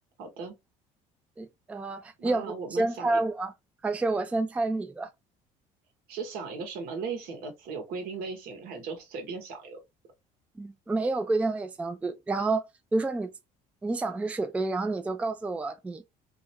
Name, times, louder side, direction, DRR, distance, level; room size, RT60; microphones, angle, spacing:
voice 1, 0.2-0.6 2.2-3.2 6.1-9.8, right 5 dB, 75° right, 0.9 m, -37 dB
voice 2, 1.4-2.5 2.7-3.5 3.8-5.1 10.6-12.6 12.9-13.3 13.8-16.0, right 2 dB, 10° right, 0.3 m, -29 dB
2.4 x 2.0 x 2.8 m
supercardioid pair, 85°, 16 cm